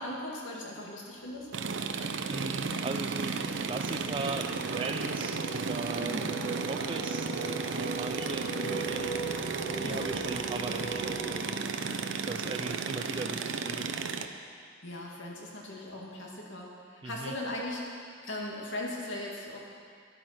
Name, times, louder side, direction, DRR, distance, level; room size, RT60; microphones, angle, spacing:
voice 1, 0.0-1.5 6.0-6.4 9.8-10.1 14.8-19.6, left 1 dB, 85° left, -2 dB, 2.3 m, -39 dB
sound 1, 1.2-1.5 1.8-13.3, right 3 dB, 50° left, 2.9 m, -41 dB
sound 2, 1.5-14.3, right 4 dB, 80° right, 0.7 m, -34 dB
voice 2, 2.3-9.1 9.8-11.7 12.0-13.9 17.0-17.3, right 3 dB, 25° right, 4 dB, 0.3 m, -39 dB
12.0 x 10.5 x 5.8 m, 2.2 s
head